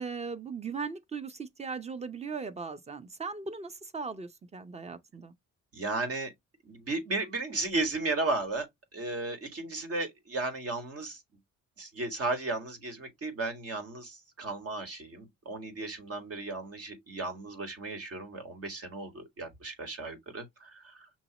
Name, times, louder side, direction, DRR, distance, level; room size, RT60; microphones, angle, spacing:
voice 1, 0.0-5.3, right 5 dB, 20° right, 0.7 m, -38 dB
voice 2, 5.7-6.3 6.7-8.7 8.9-11.2 11.8-21.0, right 3 dB, 50° right, 1.7 m, -35 dB
6.2 x 2.8 x 2.9 m
cardioid pair, 90°, 30 cm